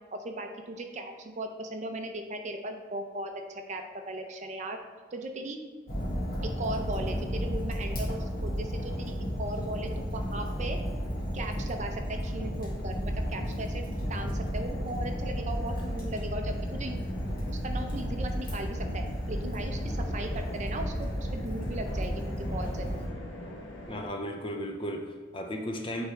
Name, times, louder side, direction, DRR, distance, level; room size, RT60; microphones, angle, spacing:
voice 1, 0.1-4.8 5.1-5.6 6.4-10.8 11.3-13.8 14.1-17.0 17.5-23.1, right 1 dB, 35° right, 4 dB, 0.5 m, -37 dB
Fire, 5.9-23.1, equal, 45° left, 1.5 m, -33 dB
sound 1, 10.2-24.1, equal, 70° left, 0.9 m, -44 dB
voice 2, 23.9-26.1, equal, 25° left, 3 dB, 0.5 m, -35 dB
8.7 x 3.6 x 3.3 m, 1.5 s
head